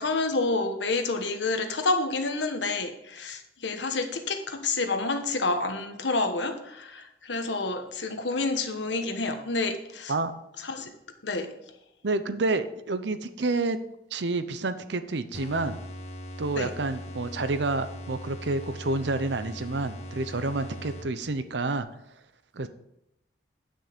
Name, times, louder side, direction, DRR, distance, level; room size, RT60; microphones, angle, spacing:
voice 1, 0.0-10.1 10.7-10.9 11.2-11.5 16.6-16.7, left 3 dB, 80° left, 6 dB, 1.3 m, -29 dB
voice 2, 12.0-13.8 14.1-15.8 16.4-21.9 22.5-22.7, right 3 dB, 75° right, 11 dB, 0.7 m, -29 dB
sound 1, 15.3-21.4, equal, 40° left, 1.0 m, -40 dB
9.8 x 6.4 x 5.1 m, 0.83 s
head